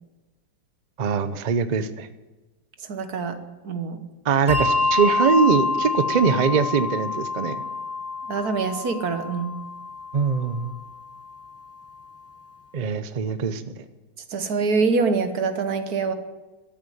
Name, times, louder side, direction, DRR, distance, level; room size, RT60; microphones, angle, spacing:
voice 1, 1.0-2.1 4.2-7.6 10.1-10.7 12.7-13.6, right 6 dB, 85° right, 11 dB, 0.3 m, -22 dB
voice 2, 2.9-3.4 3.6-4.0 8.3-9.6 14.3-16.1, right 4 dB, 60° right, 9 dB, 1.5 m, -24 dB
Bell, 4.5-11.3, left 3 dB, 10° left, 0.7 m, -27 dB
13.5 x 8.4 x 9.2 m, 1.2 s
omnidirectional pair, 2.0 m